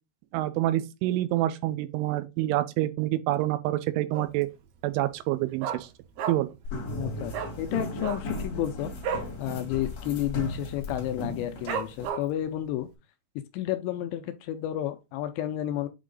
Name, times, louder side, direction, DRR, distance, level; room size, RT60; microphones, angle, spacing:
voice 1, 0.3-4.5 4.8-5.9 6.3-6.6, right 15 dB, 90° right, 3.2 m, -27 dB
Dog, 4.1-4.5 4.8-4.9 5.2-6.6 6.9-7.0 7.3-7.5 7.9-9.3 9.7-9.9 10.1-10.5 11.0-11.1 11.7-12.5 12.9-13.0, right 7 dB, 70° right, 2.6 m, -33 dB
sound 1, 6.6-12.1, left 1 dB, 60° left, 1.6 m, -36 dB
voice 2, 7.0-8.9 9.4-12.9 13.4-15.9, left 13 dB, 80° left, 2.7 m, -31 dB
8.2 x 3.1 x 3.8 m
omnidirectional pair, 5.5 m